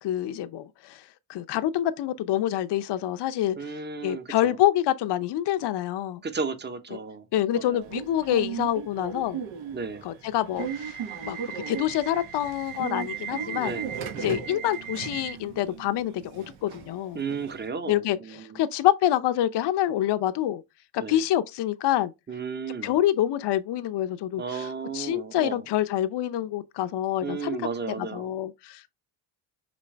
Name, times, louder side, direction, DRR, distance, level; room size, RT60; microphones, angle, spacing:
voice 1, 0.0-1.0 1.3-3.6 4.0-6.2 7.3-9.4 10.0-11.0 11.3-13.8 14.2-17.2 17.9-20.6 20.9-22.1 22.8-27.7 28.0-28.9, left 12 dB, 60° left, 0.6 m, -26 dB
voice 2, 3.6-4.6 6.2-7.3 7.5-7.9 9.7-10.0 13.6-13.9 14.1-14.3 17.1-18.6 21.0-21.2 22.3-23.0 24.4-25.6 27.2-28.3, right 5 dB, 20° right, 0.8 m, -34 dB
Subway metro underground / Alarm, 7.8-17.7, right 7 dB, 80° right, 1.2 m, -36 dB
5.1 x 3.1 x 3.3 m
cardioid pair, 85°, 46 cm